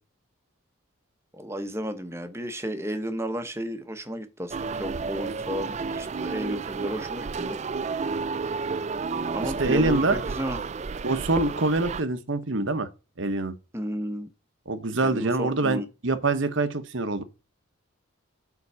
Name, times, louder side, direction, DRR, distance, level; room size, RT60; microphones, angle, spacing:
voice 1, 1.3-7.6 9.3-10.6 13.7-14.3 15.0-15.9, equal, 10° right, 0.9 m, -33 dB
sound 1, 4.5-12.0, right 4 dB, 30° right, 0.3 m, -31 dB
voice 2, 9.4-10.2 11.0-12.9 13.2-13.5 14.7-17.2, right 3 dB, 60° right, 1.0 m, -25 dB
8.4 x 3.9 x 5.5 m
head